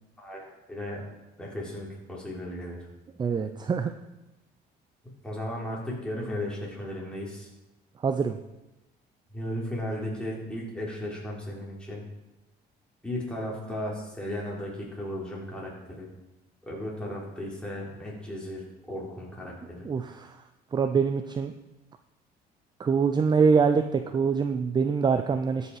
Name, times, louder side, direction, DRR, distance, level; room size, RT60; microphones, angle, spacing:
voice 1, 0.2-1.0 1.4-2.8 5.0-7.5 9.3-12.0 13.0-16.1 16.6-19.9, left 1 dB, 5° left, -4 dB, 3.5 m, -35 dB
voice 2, 3.2-3.9 8.0-8.4 19.8-20.4 20.7-21.5 22.8-25.8, right 5 dB, 25° right, 8 dB, 0.5 m, -24 dB
13.5 x 5.7 x 4.8 m, 1.0 s
cardioid pair, 110°, 17 cm